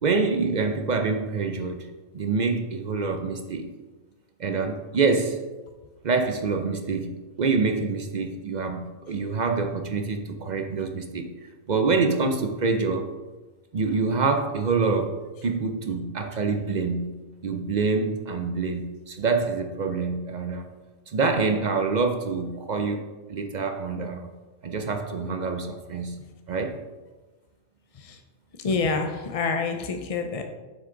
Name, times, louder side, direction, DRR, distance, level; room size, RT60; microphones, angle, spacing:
voice 1, 0.0-1.9 2.1-3.7 4.4-5.4 6.0-13.1 13.7-17.1 17.4-20.7 21.1-23.0 23.3-24.3 24.6-26.2 26.5-26.8, right 4 dB, 55° right, 5 dB, 0.5 m, -26 dB
voice 2, 28.6-30.4, left 4 dB, 65° left, 4 dB, 0.3 m, -27 dB
7.3 x 6.2 x 3.8 m, 1.2 s
omnidirectional pair, 1.5 m